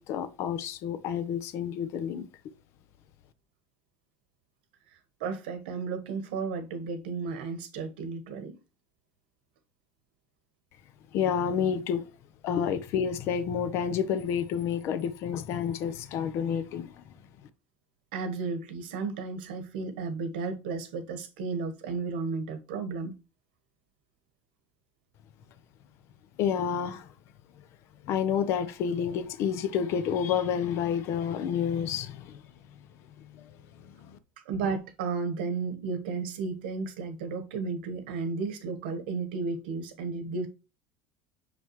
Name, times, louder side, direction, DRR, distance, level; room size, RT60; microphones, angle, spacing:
voice 1, 0.0-2.3 11.1-12.1 12.4-17.0 26.4-27.1 28.0-32.4 33.3-33.5 33.8-34.2, left 8 dB, 60° left, 0.8 m, -29 dB
voice 2, 5.2-8.6 18.1-23.2 34.5-40.5, right 4 dB, 90° right, 1.2 m, -33 dB
6.0 x 5.3 x 3.1 m
supercardioid pair, 105°, 5 cm